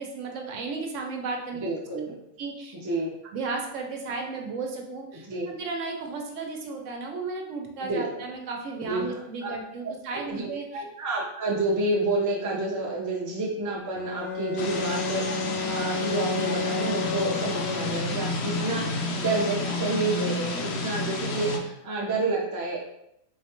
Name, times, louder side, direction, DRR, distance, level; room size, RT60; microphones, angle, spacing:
voice 1, 0.0-1.6 2.4-2.8 3.3-10.8 18.1-18.3, right 4 dB, 70° right, 2 dB, 0.9 m, -34 dB
voice 2, 1.5-2.1 2.8-3.1 5.3-5.4 7.8-8.2 8.8-9.5 10.3-10.5 11.0-18.8 19.1-22.8, right 2 dB, 25° right, -4 dB, 0.4 m, -29 dB
Bowed string instrument, 14.0-18.4, left 3 dB, 80° left, 1.1 m, -31 dB
sound 1, 14.6-21.6, left 3 dB, 65° left, 0.7 m, -31 dB
4.0 x 2.2 x 2.9 m, 0.80 s
omnidirectional pair, 1.4 m